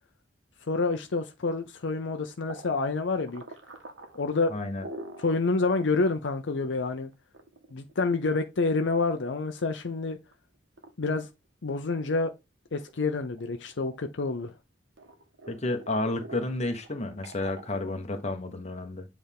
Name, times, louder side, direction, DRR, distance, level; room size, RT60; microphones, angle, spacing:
voice 1, 0.7-3.4 4.1-4.5 5.2-7.1 7.7-10.2 11.0-11.3 11.6-12.3 12.7-14.5, left 3 dB, 75° left, 0.6 m, -28 dB
sound 1, 2.5-5.4 5.8-5.9 6.3-6.4 7.1-9.4 9.9-10.3 10.8-10.9 11.4-12.4 12.7-14.6 15.0-18.5, right 2 dB, 80° right, 1.4 m, -46 dB
voice 2, 4.5-4.9 15.5-19.1, left 2 dB, 35° left, 1.1 m, -31 dB
8.0 x 3.5 x 3.5 m
head